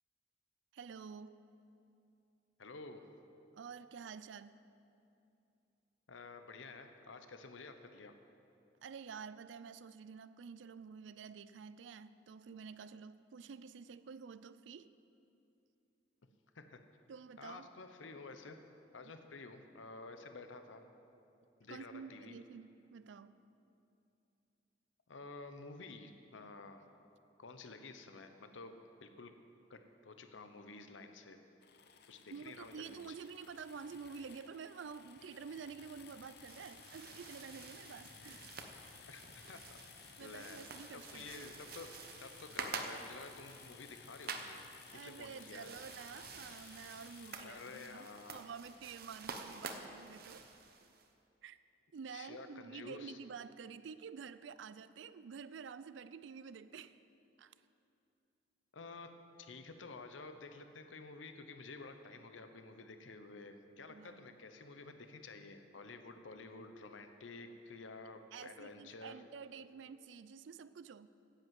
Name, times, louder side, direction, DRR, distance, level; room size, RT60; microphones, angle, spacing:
voice 1, 0.7-1.4 3.5-4.6 8.8-14.9 17.1-17.7 21.7-23.4 32.3-38.5 40.2-41.5 44.9-50.5 51.4-51.6 51.9-57.0 57.4-57.5 63.9-64.4 68.3-71.1, right 6 dB, 75° right, 0.4 m, -50 dB
voice 2, 2.6-3.0 6.1-8.1 16.5-16.8 17.4-18.6 18.9-20.8 21.6-22.4 25.1-26.8 27.4-28.7 29.0-29.3 29.7-31.4 32.1-33.2 39.1-39.8 40.2-40.6 41.1-41.9 42.2-44.6 44.9-45.7 47.4-48.4 52.1-53.2 58.7-59.1 59.4-69.2, left 3 dB, 85° left, 0.8 m, -51 dB
sound 1, 31.6-49.3, left 7 dB, 60° left, 0.7 m, -58 dB
sound 2, 36.2-51.1, right 4 dB, 50° right, 0.8 m, -49 dB
10.5 x 8.0 x 7.7 m
head